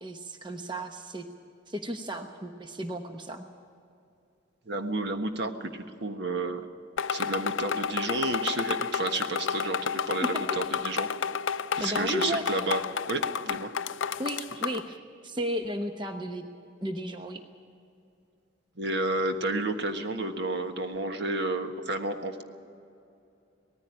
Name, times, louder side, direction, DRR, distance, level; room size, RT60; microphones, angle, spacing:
voice 1, 0.0-1.2 1.7-3.5 11.8-12.7 14.2-16.4 16.8-17.4, right 1 dB, 25° right, 5 dB, 0.9 m, -34 dB
voice 2, 4.7-6.7 7.1-11.1 11.8-12.8 13.1-13.7 18.8-22.4, right 2 dB, 60° right, 6 dB, 1.4 m, -31 dB
sound 1, 7.0-14.9, left 6 dB, 75° left, 0.5 m, -31 dB
18.5 x 14.5 x 9.8 m, 2.6 s
head